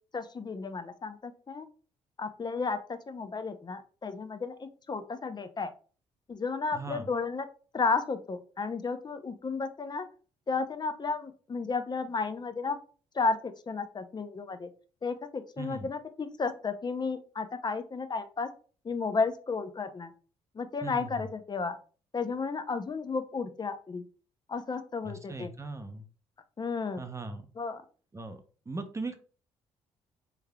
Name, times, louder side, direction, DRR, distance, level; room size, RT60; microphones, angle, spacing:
voice 1, 0.1-1.7 2.2-5.7 6.3-7.5 7.7-10.1 10.5-12.8 13.1-14.7 15.0-18.5 18.8-20.1 20.5-21.8 22.1-24.0 24.5-25.5 26.6-27.0 27.6-27.8, left 4 dB, 30° left, 9 dB, 0.5 m, -33 dB
voice 2, 6.7-7.1 15.6-15.9 20.8-21.3 25.0-26.0 27.0-27.4 28.1-29.2, right 3 dB, 20° right, 7 dB, 0.6 m, -39 dB
3.5 x 3.2 x 2.2 m, 0.39 s
hypercardioid pair, 50°, 15 cm